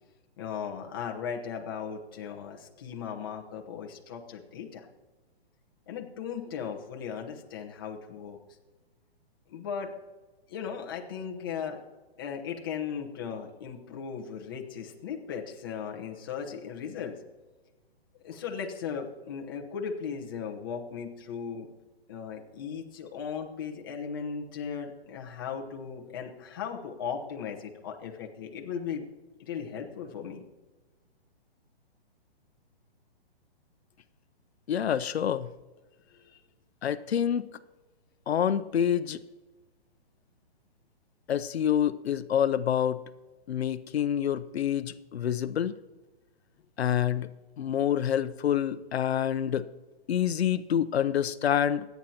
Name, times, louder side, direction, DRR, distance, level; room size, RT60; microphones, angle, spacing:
voice 1, 0.4-4.9 5.9-8.4 9.5-9.9 10.5-11.8 12.2-17.1 18.2-21.7 22.1-29.0 29.4-30.4 36.1-36.4, left 7 dB, 20° left, 1 dB, 0.9 m, -37 dB
voice 2, 34.7-35.5 36.8-37.5 38.3-39.2 41.3-43.0 43.5-45.7 46.8-47.3 47.6-49.7 50.1-51.9, left 9 dB, 90° left, 13 dB, 0.7 m, -27 dB
24.0 x 9.2 x 2.9 m, 1.2 s
hypercardioid pair, 175°, 31 cm